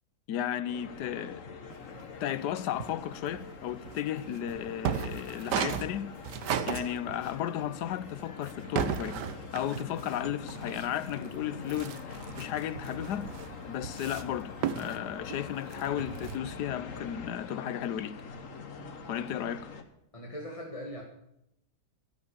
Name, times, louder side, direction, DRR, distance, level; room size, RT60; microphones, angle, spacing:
voice 1, 0.3-1.4 2.2-6.1 6.7-9.2 9.5-13.2 13.7-18.1 19.1-19.7, left 10 dB, 85° left, 1.3 m, -34 dB
sound 1, 0.7-19.8, left 5 dB, 55° left, 1.6 m, -44 dB
sound 2, 1.7-2.4 2.8-7.5 7.9-11.4 11.6-16.4, right 8 dB, 85° right, 1.6 m, -36 dB
voice 2, 20.1-21.0, equal, 20° left, 1.9 m, -40 dB
12.5 x 11.0 x 7.0 m
omnidirectional pair, 1.8 m